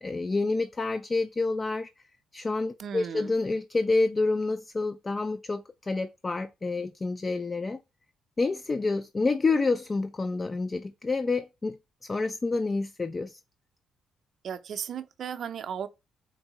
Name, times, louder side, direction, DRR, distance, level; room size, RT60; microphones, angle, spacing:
voice 1, 0.0-1.9 2.3-7.8 8.4-11.8 12.0-13.4, left 3 dB, 30° left, 0.4 m, -28 dB
voice 2, 2.8-3.3 14.4-15.9, right 8 dB, 60° right, 0.5 m, -35 dB
4.6 x 2.7 x 2.9 m
cardioid pair, 90°, 0 cm